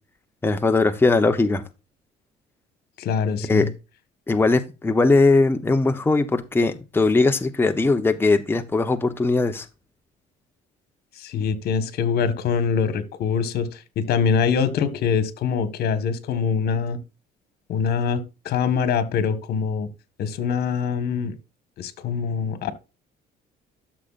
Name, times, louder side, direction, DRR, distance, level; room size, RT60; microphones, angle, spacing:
voice 1, 0.4-1.6 3.4-3.7 4.3-9.7, left 3 dB, 15° left, 0.9 m, -20 dB
voice 2, 3.0-3.7 11.2-17.0 17.7-19.9 20.2-21.3 21.8-22.7, left 6 dB, 65° left, 1.6 m, -24 dB
12.5 x 6.6 x 2.5 m
cardioid pair, 110°, 17 cm